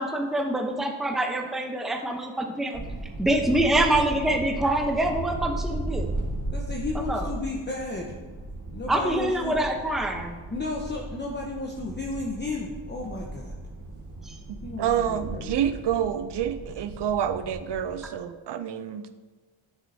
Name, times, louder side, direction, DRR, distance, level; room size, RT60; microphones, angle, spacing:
voice 1, 0.0-2.8 3.2-6.1 7.1-7.3 8.9-10.4 14.3-14.4, right 1 dB, ahead, 3 dB, 0.8 m, -25 dB
sound 1, 2.7-18.0, right 2 dB, 35° right, 1.6 m, -36 dB
voice 2, 6.5-8.1 8.7-9.6 10.5-13.5 14.6-15.5, left 2 dB, 20° left, -1 dB, 1.0 m, -33 dB
voice 3, 14.5-19.0, right 9 dB, 55° right, 11 dB, 0.6 m, -28 dB
7.6 x 6.2 x 2.8 m, 1.4 s
cardioid pair, 60°, 49 cm